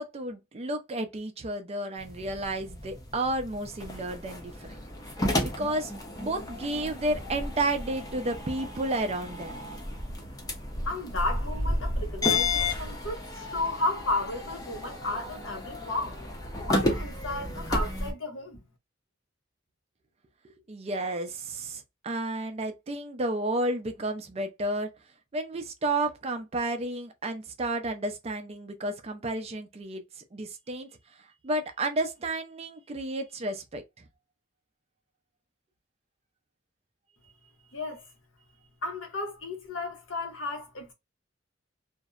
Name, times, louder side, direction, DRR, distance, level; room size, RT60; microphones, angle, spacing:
voice 1, 0.0-4.8 5.4-9.6 20.4-24.9 25.3-34.1, right 2 dB, 35° right, 0.4 m, -32 dB
sound 1, 2.0-18.1, left 2 dB, 20° left, 0.6 m, -32 dB
voice 2, 10.9-16.2 16.7-18.6 37.7-38.0 38.8-40.9, left 2 dB, 85° left, 0.8 m, -33 dB
2.6 x 2.0 x 2.3 m
head